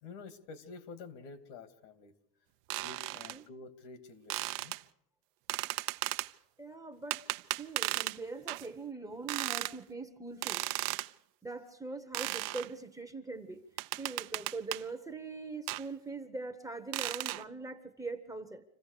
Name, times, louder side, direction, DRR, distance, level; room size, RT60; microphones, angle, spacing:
voice 1, 0.0-2.1 2.8-4.8, left 4 dB, 80° left, 12 dB, 2.6 m, -49 dB
sound 1, 2.7-3.4 4.3-4.8 5.5-6.3 7.1-8.2 8.5-8.7 9.3-9.7 10.4-11.1 12.1-12.7 13.8-14.8 15.7-15.8 16.9-17.4, right 21 dB, 70° right, 0.8 m, -35 dB
voice 2, 6.6-7.2 7.6-10.6 11.4-13.6 14.0-18.6, right 3 dB, 5° right, 7 dB, 1.0 m, -42 dB
26.5 x 16.0 x 6.7 m, 0.76 s
cardioid pair, 160°, 47 cm